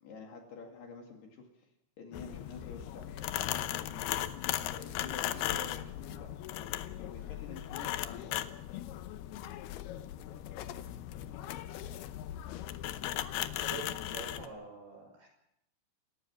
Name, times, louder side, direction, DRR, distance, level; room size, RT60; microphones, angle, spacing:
voice 1, 0.0-1.7 2.0-4.4 4.7-8.4, left 4 dB, 60° left, 2 dB, 4.0 m, -49 dB
sound 1, 2.1-14.5, left 13 dB, 90° left, 2.2 m, -37 dB
voice 2, 13.5-15.3, right 3 dB, 55° right, 3 dB, 7.6 m, -46 dB
29.0 x 15.0 x 6.2 m, 0.78 s
omnidirectional pair, 5.8 m